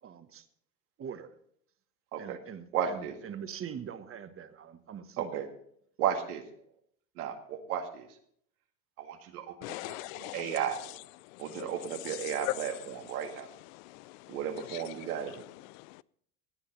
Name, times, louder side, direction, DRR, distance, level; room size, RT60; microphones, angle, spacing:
voice 1, 0.0-0.5 1.0-1.4 2.2-5.3, right 8 dB, 30° right, 1.3 m, -43 dB
voice 2, 2.7-3.1 5.2-5.5 6.0-6.4 7.2-8.1 9.0-9.5 9.8-11.0 11.4-13.5 14.3-15.4, right 8 dB, 80° right, 2.0 m, -34 dB
voice 3, 9.6-10.6 11.2-12.5 13.7-16.0, left 20 dB, 65° left, 0.5 m, -41 dB
16.5 x 9.9 x 4.0 m
hypercardioid pair, 90°, 44 cm